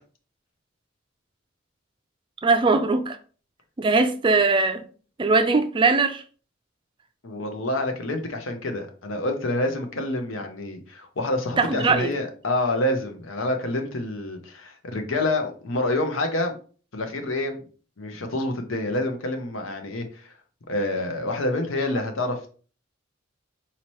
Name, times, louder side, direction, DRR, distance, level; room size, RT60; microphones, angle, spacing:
voice 1, 2.4-3.2 3.8-4.8 5.2-6.2 11.6-12.1, right 3 dB, 25° right, 0.4 m, -20 dB
voice 2, 7.2-16.5 16.9-17.6 18.0-20.3 20.7-22.4, left 1 dB, 80° left, 0.8 m, -27 dB
4.2 x 2.9 x 3.1 m
head